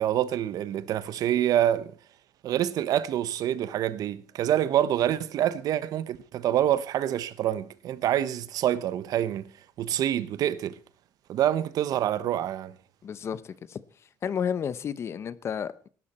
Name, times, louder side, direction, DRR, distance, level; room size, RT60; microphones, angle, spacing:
voice 1, 0.0-1.9 2.4-9.5 9.8-10.8 11.3-12.8, right 11 dB, 60° right, 0.9 m, -26 dB
voice 2, 13.0-13.8 14.2-15.9, left 7 dB, 40° left, 0.8 m, -32 dB
17.5 x 12.0 x 4.3 m
cardioid pair, 140°, 7 cm